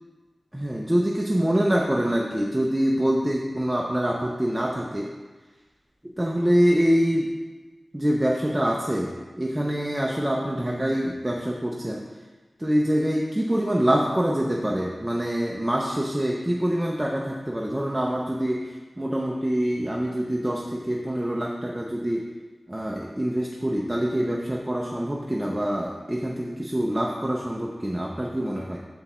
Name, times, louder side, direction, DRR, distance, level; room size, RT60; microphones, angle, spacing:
voice 1, 0.5-5.1 6.0-7.3 7.9-9.1 9.4-12.0 12.6-22.3 22.7-28.8, equal, 15° right, -1 dB, 0.6 m, -25 dB
7.0 x 6.7 x 3.1 m, 1.3 s
wide cardioid pair, 90°, 0 cm